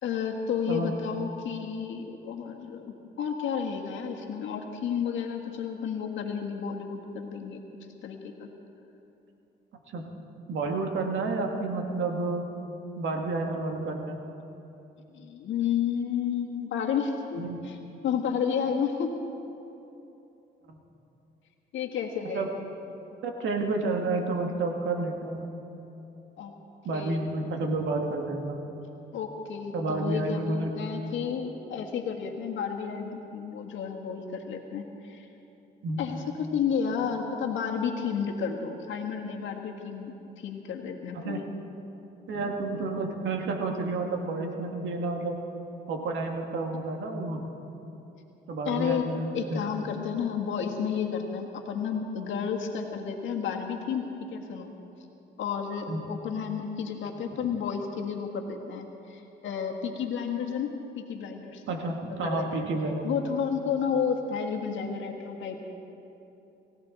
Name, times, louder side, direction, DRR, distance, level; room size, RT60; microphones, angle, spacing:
voice 1, 0.0-7.6 8.0-8.5 15.1-17.8 18.0-19.2 21.7-22.6 26.4-26.5 26.9-27.2 29.1-35.2 36.0-41.4 48.6-49.1 49.3-54.7 55.4-61.6 62.2-62.7 63.0-65.6, left 7 dB, 75° left, 2 dB, 1.6 m, -31 dB
voice 2, 10.5-12.4 13.0-14.2 17.4-17.6 22.3-22.5 23.2-25.5 26.8-28.6 29.7-30.7 35.8-36.0 41.2-41.4 42.3-45.3 45.9-47.4 48.5-49.6 55.9-56.0 61.7-63.1, right 3 dB, 70° right, 2 dB, 2.1 m, -30 dB
22.5 x 16.0 x 4.1 m, 3.0 s
cardioid pair, 90°, 20 cm